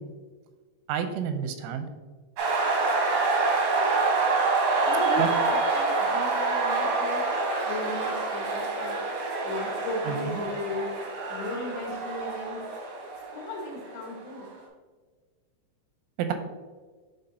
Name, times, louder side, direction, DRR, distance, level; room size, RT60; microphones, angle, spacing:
voice 1, 0.9-1.9 5.2-5.3 10.1-10.4 16.2-16.3, right 8 dB, 90° right, 7 dB, 3.0 m, -29 dB
sound 1, 2.4-14.1, right 3 dB, 70° right, 1.9 m, -27 dB
voice 2, 4.8-7.2 7.7-9.0 9.4-10.9 11.3-12.6 13.3-14.5, left 1 dB, 70° left, -3 dB, 3.6 m, -36 dB
11.0 x 3.7 x 2.7 m, 1.4 s
omnidirectional pair, 5.4 m